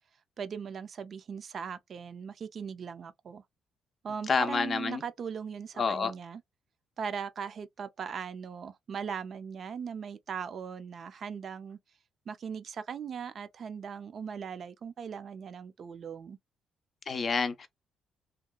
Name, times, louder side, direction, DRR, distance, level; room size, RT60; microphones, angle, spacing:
voice 1, 0.4-3.4 4.0-6.4 7.0-11.8 12.3-16.4, right 6 dB, 55° right, 0.4 m, -39 dB
voice 2, 4.3-5.0 5.8-6.1 17.1-17.7, left 5 dB, 45° left, 0.4 m, -28 dB
2.8 x 2.2 x 2.2 m
cardioid pair, 90°, 0 cm